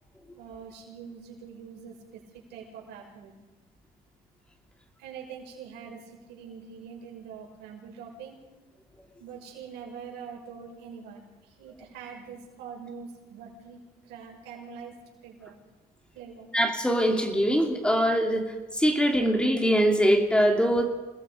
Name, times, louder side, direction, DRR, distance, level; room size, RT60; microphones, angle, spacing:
voice 1, 0.3-3.3 5.0-8.4 9.2-14.9 15.2-15.5 16.1-16.5, right 6 dB, 85° right, 0 dB, 6.4 m, -44 dB
voice 2, 16.5-18.4 18.7-20.8, equal, 5° left, 3 dB, 2.9 m, -22 dB
28.5 x 20.0 x 5.2 m, 1.2 s
cardioid pair, 110°, 17 cm